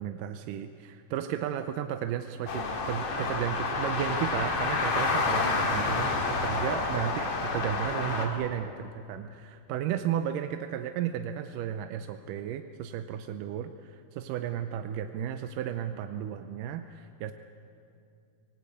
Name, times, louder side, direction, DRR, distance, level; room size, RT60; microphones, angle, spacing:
voice 1, 0.0-17.3, right 10 dB, 80° right, 8 dB, 2.3 m, -34 dB
sound 1, 2.5-8.2, left 3 dB, 60° left, 3.4 m, -29 dB
25.5 x 19.0 x 8.5 m, 2.5 s
omnidirectional pair, 3.8 m